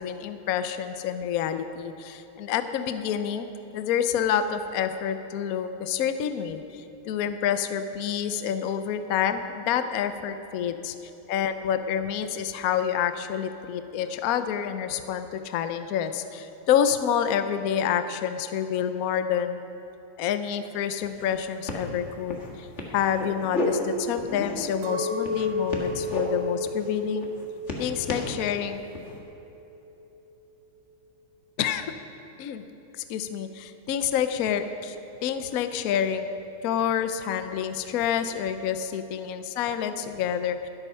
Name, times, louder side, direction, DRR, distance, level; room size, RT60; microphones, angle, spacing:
voice 1, 0.0-3.5 3.7-10.9 11.3-19.6 20.2-27.3 27.8-28.8 31.6-31.9 32.4-32.6 33.0-36.3 36.6-40.7, left 8 dB, 80° left, 9 dB, 0.8 m, -28 dB
sound 1, 20.6-20.7 21.0-21.4 21.6-21.8 22.3-22.5 22.8-23.7 24.2-24.8 25.2-26.2 26.6-26.9 27.2-28.3 28.9-29.2, left 2 dB, 35° left, 1.8 m, -33 dB
Chink clink, 24.8-29.1 29.6-30.1, left 2 dB, 90° right, 2.0 m, -33 dB
12.5 x 12.0 x 5.6 m, 2.9 s
omnidirectional pair, 2.4 m